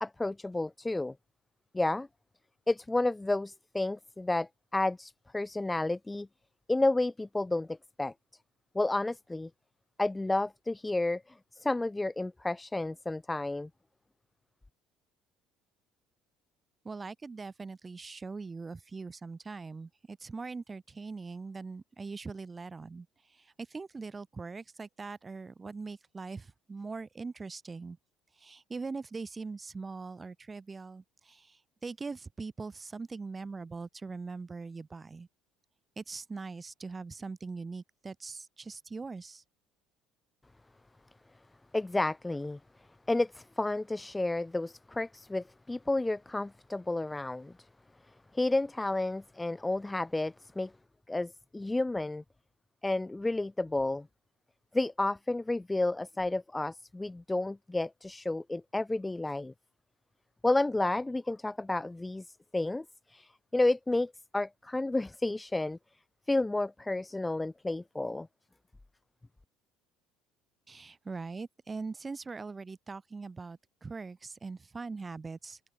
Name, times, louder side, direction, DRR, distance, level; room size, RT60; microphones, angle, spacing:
voice 1, 0.0-1.1 1.7-2.1 2.7-6.3 6.7-8.1 8.7-9.5 10.0-11.2 11.5-13.7 41.7-42.6 43.1-47.5 48.3-50.7 51.1-52.2 52.8-54.1 54.7-59.5 60.4-62.2 62.5-62.8 63.1-65.8 66.3-68.3, left 2 dB, 5° left, 0.4 m, -31 dB
voice 2, 16.8-28.0 28.4-35.3 36.0-39.4 70.7-75.6, right 4 dB, 15° right, 1.8 m, -41 dB
cardioid pair, 165°, 0 cm